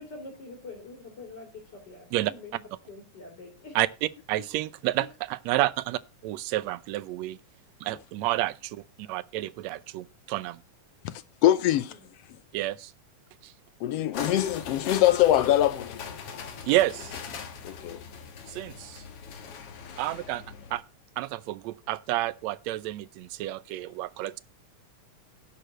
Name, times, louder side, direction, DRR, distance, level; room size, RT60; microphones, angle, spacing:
voice 1, 0.0-3.8 11.9-12.1, left 3 dB, 35° left, 3.5 m, -45 dB
voice 2, 3.7-7.4 7.8-10.6 12.5-12.9 13.4-13.5 16.6-17.2 18.5-19.0 20.0-20.4 20.7-20.8 21.2-24.4, right 16 dB, 75° right, 1.8 m, -30 dB
voice 3, 11.4-11.9 13.8-16.1 17.6-18.0, left 12 dB, 75° left, 1.5 m, -23 dB
sound 1, 14.1-20.8, left 6 dB, 55° left, 2.2 m, -40 dB
11.5 x 4.9 x 7.4 m
omnidirectional pair, 3.4 m